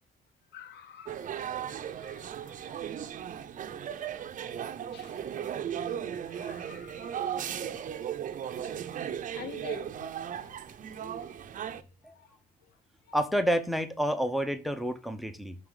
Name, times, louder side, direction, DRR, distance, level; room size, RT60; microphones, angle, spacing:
voice 1, 0.5-3.2 3.8-4.2 4.9-5.2 6.2-7.5 9.3-10.1 10.4-11.7 12.1-12.4 13.1-13.2, left 8 dB, 75° left, 0.9 m, -50 dB
sound 1, 1.1-11.8, right 9 dB, 50° right, 0.7 m, -36 dB
voice 2, 13.1-15.6, equal, ahead, 0.7 m, -29 dB
6.0 x 4.8 x 3.8 m
cardioid pair, 125°, 18 cm